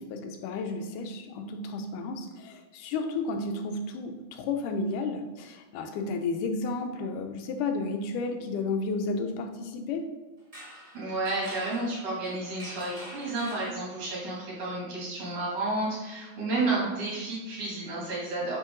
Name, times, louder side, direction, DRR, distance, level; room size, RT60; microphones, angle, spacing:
voice 1, 0.0-10.1, left 3 dB, 85° left, 5 dB, 2.2 m, -32 dB
sound 1, 10.4-14.3, equal, 15° right, 1.4 m, -46 dB
voice 2, 10.9-18.6, right 2 dB, 70° right, -6 dB, 3.8 m, -31 dB
9.1 x 3.7 x 3.8 m, 1.1 s
omnidirectional pair, 3.6 m